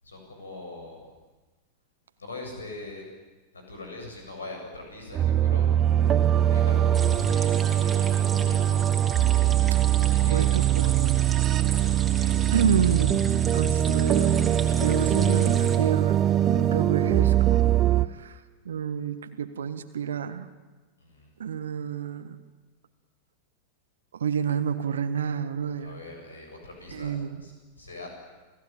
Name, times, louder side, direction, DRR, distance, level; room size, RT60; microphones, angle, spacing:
voice 1, 0.0-1.1 2.2-3.0 3.5-5.7 6.5-8.9 10.0-11.1 11.6-12.4 12.8-12.9 14.2-14.4 21.0-21.3 25.8-28.1, left 2 dB, 75° left, 2 dB, 7.8 m, -43 dB
sound 1, 5.1-18.1, right 11 dB, 30° right, 0.9 m, -22 dB
sound 2, 6.9-15.8, right 3 dB, 15° right, 3.3 m, -36 dB
voice 2, 10.3-11.2 12.5-16.2 16.5-17.7 18.1-20.5 21.4-22.4 24.1-25.9 26.9-27.4, right 7 dB, 65° right, 10 dB, 1.5 m, -29 dB
28.5 x 18.5 x 9.1 m, 1.3 s
figure-of-eight pair, 90°, 0 cm